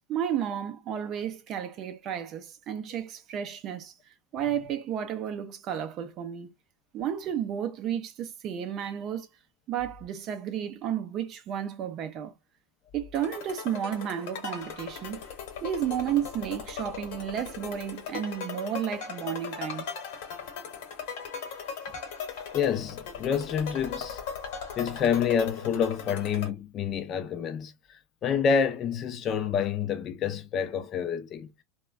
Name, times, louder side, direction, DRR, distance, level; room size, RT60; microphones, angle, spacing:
voice 1, 0.1-3.9 4.3-6.5 6.9-9.3 9.7-12.3 12.9-15.2 15.6-19.9, right 9 dB, 40° right, 0.4 m, -32 dB
sound 1, 13.1-26.5, left 6 dB, 65° left, 1.1 m, -38 dB
voice 2, 22.5-24.2 24.8-31.5, left 7 dB, 35° left, 0.5 m, -28 dB
3.0 x 2.2 x 2.3 m
supercardioid pair, 140°, 0 cm